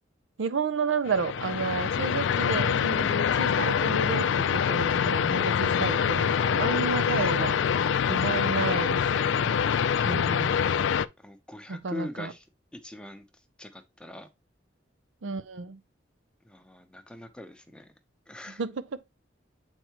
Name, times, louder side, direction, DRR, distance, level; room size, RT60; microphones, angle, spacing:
voice 1, 0.4-7.6 8.1-9.6 10.0-10.6 11.7-12.3 15.2-15.8 18.6-18.9, right 5 dB, 90° right, 0.6 m, -31 dB
sound 1, 1.1-11.1, left 7 dB, 80° left, 0.4 m, -25 dB
voice 2, 7.2-7.5 11.2-12.5 12.7-13.3 13.6-14.3 16.4-17.9 18.3-18.6, left 1 dB, 5° left, 0.7 m, -42 dB
7.8 x 4.5 x 2.9 m
head